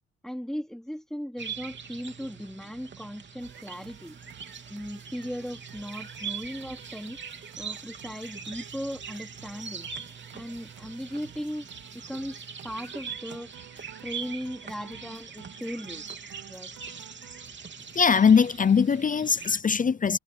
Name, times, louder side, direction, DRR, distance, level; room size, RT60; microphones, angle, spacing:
voice 1, 0.2-4.2 4.7-7.2 7.6-9.9 10.3-11.6 11.9-13.5 14.0-16.0 16.5-16.7, equal, ahead, 3.3 m, -37 dB
sound 1, 1.4-19.6, right 6 dB, 40° right, 3.3 m, -42 dB
sound 2, 3.4-17.5, right 13 dB, 90° right, 1.8 m, -54 dB
voice 2, 17.9-20.2, left 6 dB, 25° left, 0.5 m, -21 dB
cardioid pair, 90°, 30 cm